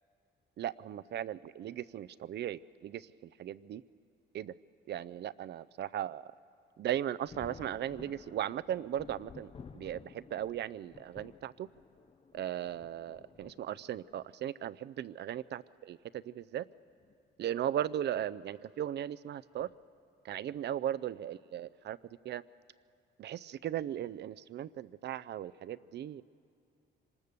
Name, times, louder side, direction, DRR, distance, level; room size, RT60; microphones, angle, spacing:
voice 1, 0.6-3.1 3.4-3.8 4.3-4.5 4.9-6.3 6.8-11.7 12.3-16.6 17.4-19.7 20.2-22.0 22.2-22.4 23.2-26.2, right 11 dB, 60° right, 17 dB, 0.5 m, -37 dB
Thunder, 7.3-14.3 15.3-15.4 16.9-17.1 17.5-17.6 19.6-19.8 20.5-20.8, left 5 dB, 30° left, 0.6 m, -54 dB
25.5 x 19.5 x 6.8 m, 2.4 s
cardioid pair, 90°, 20 cm